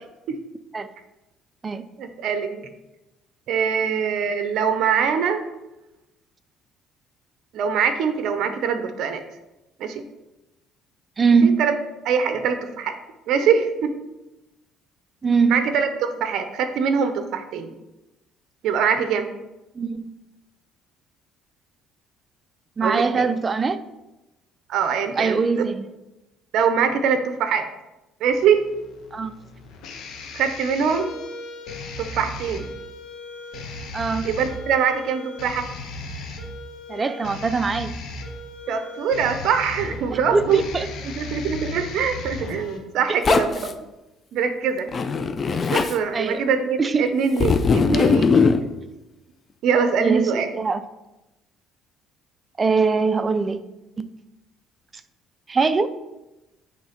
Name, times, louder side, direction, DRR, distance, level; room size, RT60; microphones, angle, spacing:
voice 1, 2.0-2.7 3.5-5.4 7.5-9.2 9.8-10.0 11.4-11.7 12.0-12.9 13.3-13.9 15.5-17.7 18.6-19.3 22.8-23.3 24.7-25.6 26.5-27.7 28.2-28.7 30.3-31.1 32.0-32.7 34.2-35.7 38.7-40.6 41.0-43.7 44.3-44.9 45.7-48.5 49.6-50.5, right 6 dB, 65° right, 8 dB, 0.6 m, -23 dB
voice 2, 11.2-11.6 15.2-15.5 19.8-20.2 22.8-23.8 25.2-25.9 29.1-29.3 33.9-34.3 36.9-37.9 40.1-40.9 43.1-43.2 46.1-46.5 46.8-47.1 50.0-50.8 52.6-53.6 54.0-54.1 55.5-55.9, right 4 dB, 25° right, 12 dB, 0.4 m, -22 dB
sound 1, 28.3-42.8, left 2 dB, 75° left, 1.3 m, -36 dB
Zipper (clothing), 43.2-43.7 44.9-45.9 47.4-48.6, left 4 dB, 35° left, 0.5 m, -19 dB
8.5 x 3.2 x 5.0 m, 1.0 s
cardioid pair, 110°, 0 cm